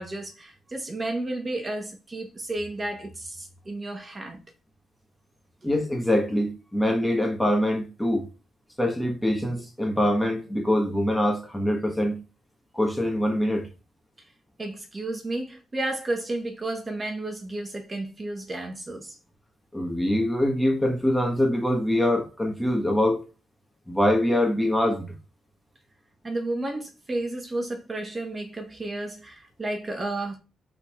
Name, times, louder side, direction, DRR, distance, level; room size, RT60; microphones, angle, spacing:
voice 1, 0.0-4.4 14.2-14.3 14.6-19.2 26.2-30.4, right 2 dB, 30° right, 1.2 m, -32 dB
voice 2, 5.6-8.3 8.8-12.2 12.7-13.7 19.7-23.2 23.9-25.0, left 1 dB, 10° left, 1.5 m, -24 dB
3.9 x 3.9 x 3.1 m
supercardioid pair, 65°, 0 cm